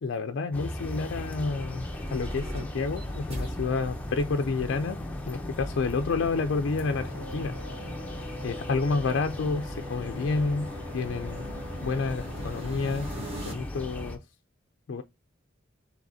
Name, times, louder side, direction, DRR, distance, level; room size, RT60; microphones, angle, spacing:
voice 1, 0.0-7.6 8.4-11.5 11.8-13.1 13.4-14.2 14.9-15.0, left 4 dB, 60° left, 0.4 m, -29 dB
sound 1, 0.5-14.2, left 1 dB, 10° left, 0.6 m, -37 dB
sound 2, 1.5-13.5, equal, 30° right, 1.2 m, -43 dB
Race car auto racing / Accelerating revving vroom, 6.1-13.4, left 1 dB, 60° right, 1.9 m, -45 dB
4.8 x 3.4 x 2.7 m
head